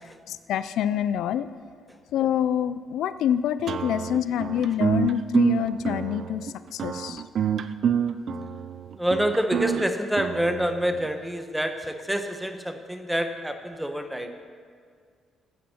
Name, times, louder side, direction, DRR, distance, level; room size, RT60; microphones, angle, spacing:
voice 1, 0.3-1.5 2.1-7.2, left 10 dB, 80° left, 14 dB, 0.4 m, -26 dB
sound 1, 3.7-11.1, right 8 dB, 60° right, 0.5 m, -27 dB
voice 2, 9.0-14.5, equal, 5° right, 7 dB, 1.0 m, -27 dB
14.5 x 8.6 x 4.3 m, 2.1 s
cardioid pair, 90°, 0 cm